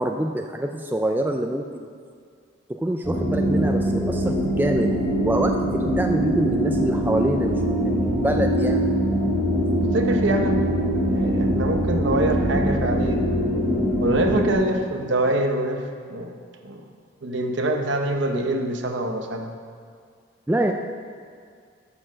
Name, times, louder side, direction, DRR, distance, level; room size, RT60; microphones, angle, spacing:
voice 1, 0.0-1.9 2.7-4.9 5.2-8.9 20.5-20.7, right 1 dB, 10° right, 3 dB, 0.3 m, -25 dB
sound 1, 3.0-14.5, equal, 10° left, 2.1 m, -23 dB
voice 2, 9.9-10.6 11.1-13.3 14.0-16.3 16.6-16.8 17.2-19.5, right 1 dB, 65° right, 4 dB, 0.9 m, -25 dB
8.6 x 6.6 x 6.2 m, 2.2 s
head